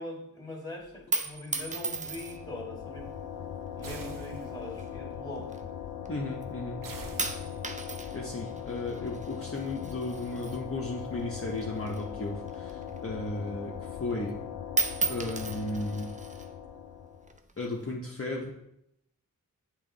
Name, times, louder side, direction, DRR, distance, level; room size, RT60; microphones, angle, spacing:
voice 1, 0.0-3.2 3.7-5.6, left 1 dB, 10° left, 1 dB, 1.7 m, -42 dB
sound 1, 0.8-2.6 3.4-3.9 4.7-6.1 6.4-6.8 7.2-11.2 11.5-13.2 13.6-13.7 14.0-14.4 14.7-16.5 17.3-17.9, right 3 dB, 20° right, 0.5 m, -35 dB
sound 2, 1.5-17.4, left 8 dB, 80° left, 0.5 m, -40 dB
sound 3, 3.8-4.8 6.8-7.9, right 4 dB, 65° right, 0.6 m, -45 dB
voice 2, 6.1-6.8 8.1-14.4 15.1-16.1 17.6-18.5, left 2 dB, 40° left, -3 dB, 0.8 m, -35 dB
8.3 x 3.1 x 3.8 m, 0.78 s
wide cardioid pair, 60°, 35 cm